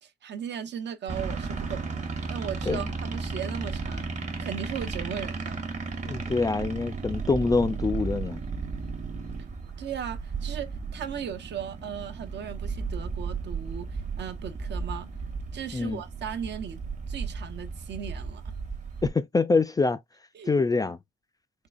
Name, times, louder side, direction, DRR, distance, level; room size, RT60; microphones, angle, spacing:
voice 1, 0.0-4.1 4.4-5.6 9.8-15.1 15.5-16.8 17.1-18.6 20.3-20.5, right 8 dB, 60° right, 0.8 m, -37 dB
sound 1, 1.1-19.1, right 4 dB, 35° right, 1.1 m, -34 dB
voice 2, 6.0-8.4 15.7-16.0 19.0-20.0 20.5-21.0, left 3 dB, 20° left, 0.3 m, -25 dB
3.8 x 3.2 x 2.4 m
cardioid pair, 90°, 20 cm